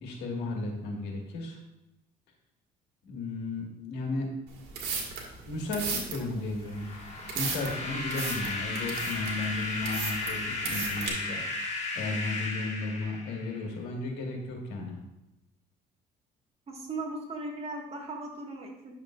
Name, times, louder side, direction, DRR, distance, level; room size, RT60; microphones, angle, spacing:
voice 1, 0.0-1.6 3.0-4.3 5.5-6.9 7.3-15.0, left 2 dB, 85° left, 1 dB, 1.8 m, -34 dB
sound 1, 4.5-11.1, right 5 dB, 75° right, 1.8 m, -36 dB
sound 2, 6.7-13.7, left 3 dB, 40° left, 1.8 m, -35 dB
voice 2, 16.7-18.9, right 2 dB, 35° right, 0 dB, 1.7 m, -37 dB
9.9 x 6.7 x 2.5 m, 0.92 s
cardioid pair, 110°, 17 cm